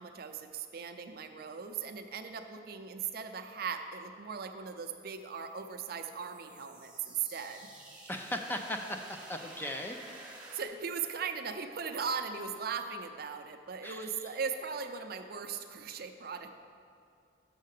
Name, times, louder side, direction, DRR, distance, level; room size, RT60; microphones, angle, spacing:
voice 1, 0.0-7.7 10.5-16.5, right 6 dB, 55° right, 7 dB, 0.5 m, -38 dB
sound 1, 5.1-10.6, right 2 dB, 5° right, 1.0 m, -51 dB
voice 2, 8.1-10.0 13.8-14.1, left 1 dB, 10° left, 4 dB, 0.4 m, -37 dB
6.5 x 6.5 x 6.5 m, 2.4 s
head